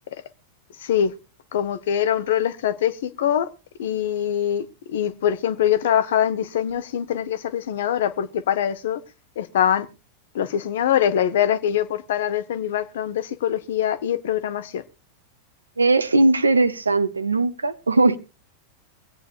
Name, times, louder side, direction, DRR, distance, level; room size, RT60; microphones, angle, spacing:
voice 1, 0.8-1.1 1.5-3.5 3.8-9.0 9.4-9.9 10.3-14.8, left 10 dB, 60° left, 0.9 m, -23 dB
voice 2, 15.8-18.2, right 2 dB, 80° right, 0.7 m, -19 dB
25.0 x 9.0 x 2.4 m
figure-of-eight pair, 90°, 0 cm